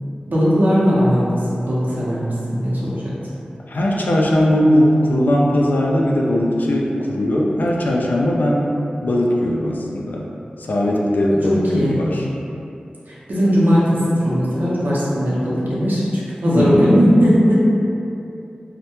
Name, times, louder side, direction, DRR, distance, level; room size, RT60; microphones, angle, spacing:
voice 1, 0.3-3.1 11.5-12.0 13.1-17.6, equal, 70° right, -8 dB, 0.6 m, -18 dB
voice 2, 3.7-8.7 9.0-10.2 10.6-12.3 16.5-17.0, left 1 dB, 70° left, -2 dB, 0.3 m, -18 dB
2.1 x 2.1 x 2.9 m, 2.7 s
cardioid pair, 45°, 3 cm